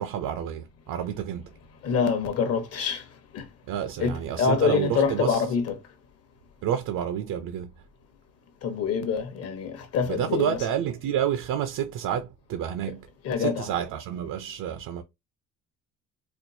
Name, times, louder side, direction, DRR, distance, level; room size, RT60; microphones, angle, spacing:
voice 1, 0.0-1.5 3.7-5.4 6.6-7.7 10.1-13.1 13.4-15.0, right 9 dB, 80° right, 0.6 m, -29 dB
voice 2, 1.8-3.0 3.3-3.4 4.0-5.8 8.6-10.6 12.8-12.9 13.2-13.7, left 6 dB, 50° left, 0.9 m, -26 dB
4.3 x 2.3 x 2.6 m
cardioid pair, 160°, 32 cm